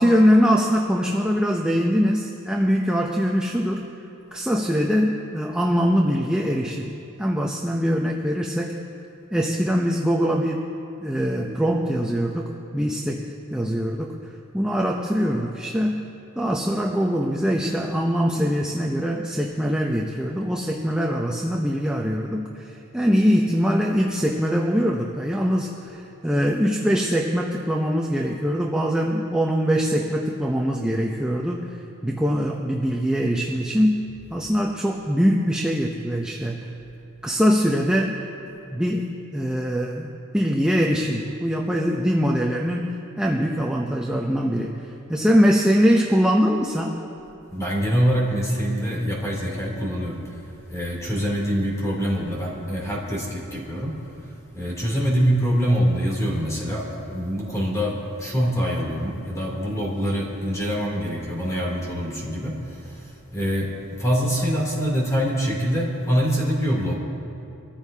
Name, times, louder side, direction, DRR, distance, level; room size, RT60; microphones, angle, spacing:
voice 1, 0.0-3.9 4.3-8.8 9.3-10.7 11.0-14.2 14.5-16.0 16.4-31.8 32.0-34.0 34.3-36.7 37.2-38.2 38.7-47.0, equal, 5° right, -1 dB, 0.6 m, -22 dB
voice 2, 47.5-50.4 50.7-54.0 54.5-63.7 64.0-66.9, equal, 15° left, -4 dB, 3.0 m, -24 dB
23.5 x 14.5 x 2.8 m, 2.8 s
head